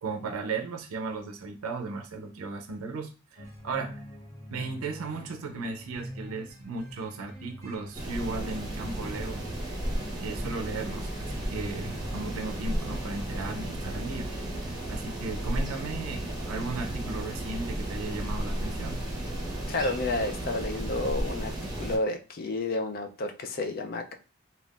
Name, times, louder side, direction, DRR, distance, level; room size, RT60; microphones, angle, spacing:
voice 1, 0.0-4.0 4.5-9.4 9.8-14.3 14.5-19.1, right 3 dB, 90° right, 4 dB, 0.5 m, -36 dB
sound 1, 3.4-15.6, equal, 15° left, 1.3 m, -45 dB
sound 2, 7.9-22.0, right 1 dB, 20° right, 0.8 m, -34 dB
voice 2, 19.7-21.5 21.8-24.1, left 2 dB, 45° left, 6 dB, 0.3 m, -30 dB
3.5 x 2.3 x 2.4 m, 0.34 s
head